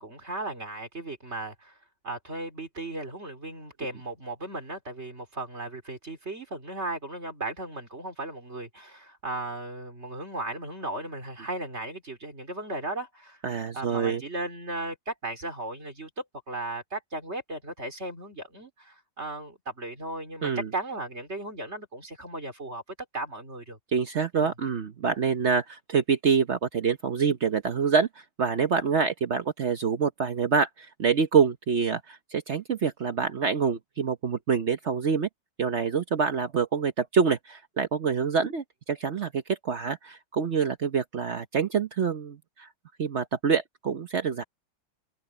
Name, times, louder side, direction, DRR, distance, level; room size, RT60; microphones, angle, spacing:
voice 1, 0.0-1.8 2.0-13.4 13.7-22.8 23.1-23.8 24.3-24.5, right 2 dB, 30° right, 3.9 m, -36 dB
voice 2, 13.4-14.2 20.4-20.7 23.9-28.1 28.4-35.3 35.6-42.7 43.0-44.4, right 6 dB, 65° right, 0.6 m, -26 dB
omnidirectional pair, 2.4 m